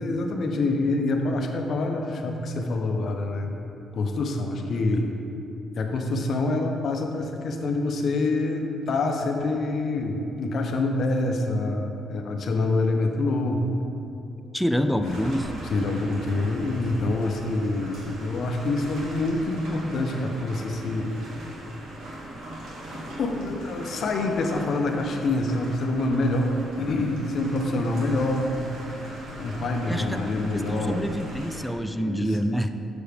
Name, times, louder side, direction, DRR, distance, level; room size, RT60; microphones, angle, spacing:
voice 1, 0.0-3.6 3.9-5.1 5.8-13.8 14.9-15.3 15.7-21.2 23.2-28.5 29.4-31.1 31.9-32.4, left 2 dB, 60° left, 3 dB, 0.7 m, -26 dB
voice 2, 14.5-15.5 29.9-32.7, equal, ahead, 8 dB, 0.4 m, -27 dB
sound 1, 15.0-31.6, right 1 dB, 80° right, 1.6 m, -39 dB
6.8 x 6.6 x 3.4 m, 2.8 s
cardioid pair, 90°, 0 cm